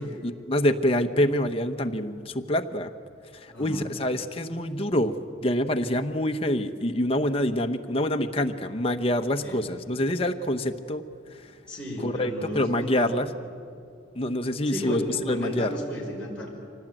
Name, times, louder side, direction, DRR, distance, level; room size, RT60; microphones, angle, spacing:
voice 1, 0.0-2.9 3.4-5.1 5.4-11.0 12.0-13.3 14.1-15.7, left 1 dB, 30° left, 6 dB, 1.0 m, -26 dB
voice 2, 3.5-4.0 9.4-9.6 11.4-13.2 14.7-16.5, equal, 5° left, -6 dB, 5.6 m, -34 dB
25.5 x 18.0 x 9.1 m, 2.4 s
head